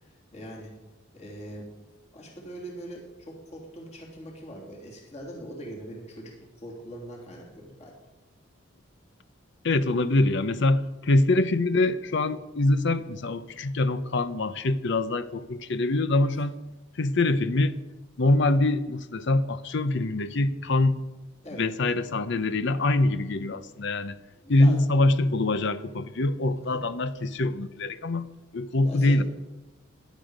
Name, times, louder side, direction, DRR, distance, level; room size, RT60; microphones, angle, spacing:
voice 1, 0.0-0.7 1.1-1.7 2.1-7.9 21.4-21.7 24.4-24.8 26.6-26.8 28.8-29.2, right 1 dB, 35° left, -2 dB, 3.2 m, -42 dB
voice 2, 9.6-16.6 17.0-17.8 18.2-21.0 21.6-24.2 24.5-29.2, left 2 dB, 65° left, 13 dB, 0.7 m, -24 dB
17.0 x 11.5 x 5.2 m, 1.1 s
head